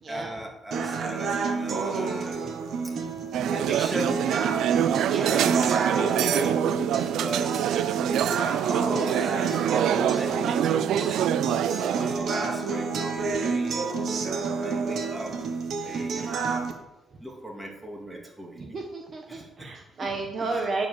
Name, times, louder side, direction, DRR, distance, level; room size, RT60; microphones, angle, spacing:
voice 1, 0.1-2.4 3.5-4.3 5.2-5.9 6.2-6.5 7.0-7.8 8.8-9.3 10.1-15.3 15.8-16.3 17.2-18.6 19.3-19.7 20.0-20.1 20.4-20.7, right 1 dB, 10° right, -1 dB, 2.7 m, -37 dB
sound 1, 0.7-16.7, right 4 dB, 65° right, 1.3 m, -29 dB
sound 2, 3.3-12.2, right 11 dB, 80° right, 0.3 m, -26 dB
voice 2, 18.6-20.9, right 3 dB, 45° right, 1 dB, 1.2 m, -32 dB
9.0 x 5.3 x 6.6 m, 0.95 s
cardioid pair, 90°, 0 cm